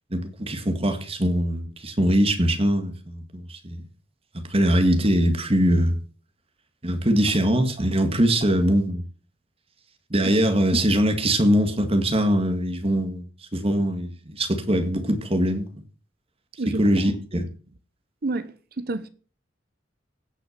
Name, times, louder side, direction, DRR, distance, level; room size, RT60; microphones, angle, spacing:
voice 1, 0.1-3.8 4.3-6.0 6.8-9.0 10.1-13.3 13.5-15.7 16.8-17.5, equal, 30° right, 2.0 m, -22 dB
voice 2, 18.2-19.1, right 2 dB, 55° right, 0.9 m, -29 dB
16.5 x 6.0 x 6.7 m
head